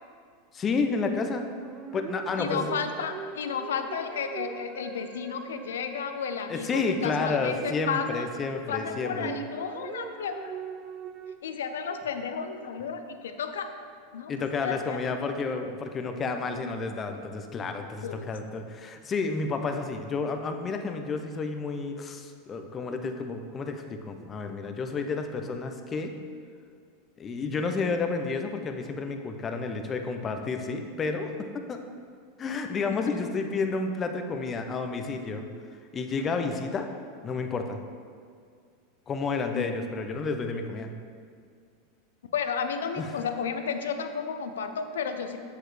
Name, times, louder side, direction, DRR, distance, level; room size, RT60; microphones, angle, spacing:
voice 1, 0.5-1.4 1.9-2.7 6.5-9.3 14.3-26.1 27.2-31.8 32.4-35.5 35.9-36.9 37.2-37.8 39.1-40.9 43.0-43.1, left 4 dB, 30° left, 6 dB, 0.7 m, -31 dB
sound 1, 1.6-8.6 8.9-11.4, right 7 dB, 35° right, 0.4 m, -41 dB
voice 2, 2.4-8.3 8.7-10.5 11.4-13.7 14.1-14.3 14.6-15.0 18.0-18.3 32.9-33.1 39.5-39.7 42.3-45.4, left 6 dB, 80° left, 8 dB, 0.5 m, -32 dB
7.7 x 6.7 x 3.2 m, 2.2 s
hypercardioid pair, 100°, 0 cm